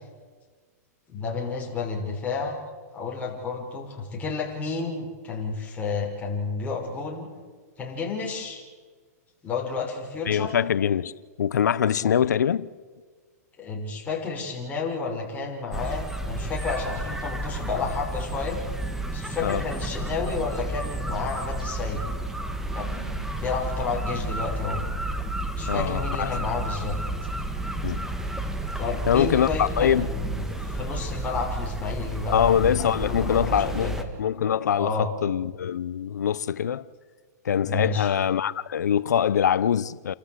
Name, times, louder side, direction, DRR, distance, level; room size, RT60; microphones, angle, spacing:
voice 1, 1.1-2.6 2.9-7.3 7.8-8.6 9.4-10.5 12.0-12.1 13.6-18.6 19.1-22.1 22.7-24.8 25.5-27.0 28.8-34.0 34.8-35.1 37.6-38.1, left 4 dB, 15° left, 5.9 m, -31 dB
voice 2, 10.3-11.1 11.4-12.7 19.4-19.6 25.7-26.3 27.8-28.1 29.1-30.1 32.3-36.8 37.4-40.1, left 8 dB, 90° left, 0.7 m, -23 dB
sound 1, 15.7-34.0, right 1 dB, 5° right, 1.8 m, -31 dB
29.5 x 13.5 x 8.2 m
hypercardioid pair, 135°, 9 cm